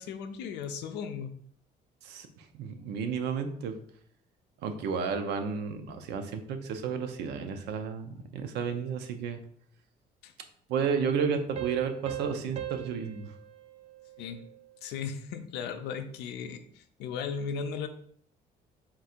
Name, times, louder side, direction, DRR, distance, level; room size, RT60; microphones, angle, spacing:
voice 1, 0.0-1.3 10.2-10.3 10.8-10.9 14.2-14.4 14.8-17.9, left 6 dB, 85° left, 8 dB, 0.5 m, -36 dB
voice 2, 2.0-3.8 4.6-9.4 10.7-13.3, right 6 dB, 80° right, 7 dB, 0.6 m, -32 dB
sound 1, 11.6-14.9, right 11 dB, 40° right, 0.4 m, -41 dB
3.7 x 2.5 x 4.3 m, 0.63 s
cardioid pair, 110°, 17 cm